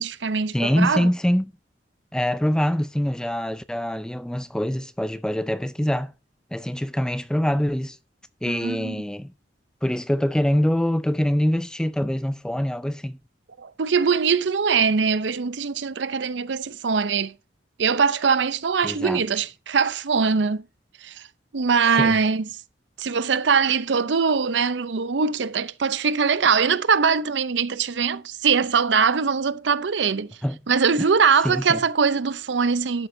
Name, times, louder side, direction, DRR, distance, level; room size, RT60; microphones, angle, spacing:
voice 1, 0.0-1.1 8.5-9.0 13.6-17.3 17.8-20.7 21.0-21.3 21.5-22.5 23.0-30.4 30.7-33.1, right 5 dB, 80° right, 0.6 m, -22 dB
voice 2, 0.5-1.5 2.1-6.1 6.5-8.0 8.4-9.3 9.8-13.2 18.8-19.2 21.9-22.1 30.4-30.6 31.4-31.8, equal, 5° left, 0.4 m, -24 dB
12.5 x 8.8 x 2.7 m
head